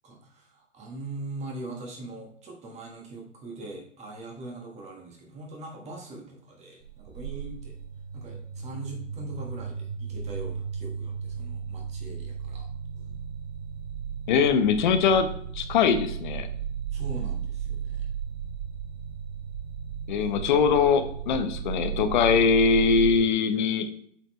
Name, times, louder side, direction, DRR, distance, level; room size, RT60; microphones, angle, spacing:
voice 1, 0.0-7.8 8.1-12.7 16.9-18.1, right 2 dB, 15° right, 1 dB, 1.5 m, -41 dB
sound 1, 6.8-23.2, right 7 dB, 40° right, 2.1 m, -35 dB
voice 2, 14.3-15.3 15.5-16.5 20.1-24.0, left 6 dB, 40° left, 9 dB, 0.7 m, -22 dB
8.0 x 4.3 x 3.1 m, 0.64 s
figure-of-eight pair, 120°, 38 cm